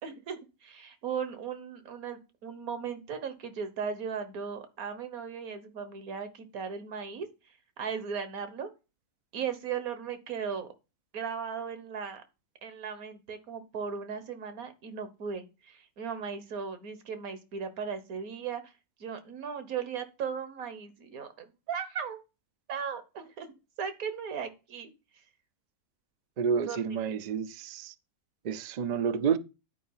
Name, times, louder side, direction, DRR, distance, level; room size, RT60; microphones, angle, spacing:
voice 1, 0.0-7.3 7.8-8.7 9.3-10.7 11.1-12.2 12.6-18.6 19.0-22.2 22.7-23.5 23.8-24.9 26.7-27.0, right 6 dB, 75° right, 1.6 m, -37 dB
voice 2, 26.4-27.9 28.4-29.4, right 6 dB, 90° right, 0.3 m, -29 dB
9.8 x 4.8 x 5.5 m
omnidirectional pair, 1.5 m